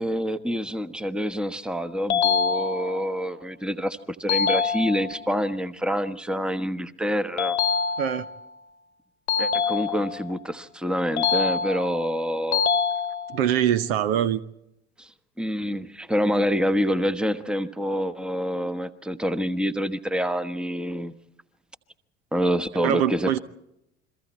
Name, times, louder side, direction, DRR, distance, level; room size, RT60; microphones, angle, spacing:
voice 1, 0.0-7.6 9.4-12.6 15.0-21.1 22.3-23.4, equal, 5° right, 1.2 m, -27 dB
sound 1, 2.1-3.1 4.3-5.3 7.4-8.4 9.3-10.3 11.2-12.1 12.5-13.5, left 6 dB, 75° left, 1.2 m, -25 dB
voice 2, 13.3-14.4 22.8-23.4, right 10 dB, 65° right, 0.9 m, -23 dB
29.5 x 23.0 x 4.3 m
figure-of-eight pair, 70°, 34 cm